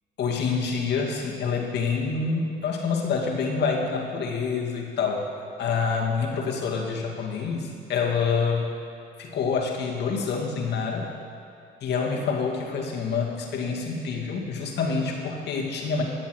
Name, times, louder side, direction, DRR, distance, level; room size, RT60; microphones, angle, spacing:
voice 1, 0.2-5.3 5.6-8.6 9.2-11.1 11.8-16.0, left 5 dB, 65° left, 0 dB, 2.1 m, -27 dB
13.5 x 7.3 x 6.2 m, 2.4 s
supercardioid pair, 80°, 18 cm